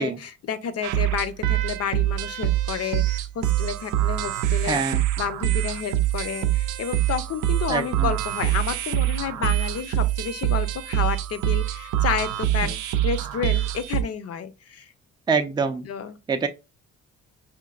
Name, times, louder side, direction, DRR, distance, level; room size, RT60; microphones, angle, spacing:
voice 1, 0.0-4.8 5.2-14.9 15.9-16.2, left 7 dB, 55° left, 0.6 m, -30 dB
sound 1, 0.8-14.0, right 13 dB, 90° right, 0.5 m, -25 dB
voice 2, 4.6-5.0 7.7-8.1 15.3-15.9 16.3-16.5, right 5 dB, 15° right, 0.4 m, -25 dB
5.1 x 2.5 x 2.3 m
cardioid pair, 90°, 30 cm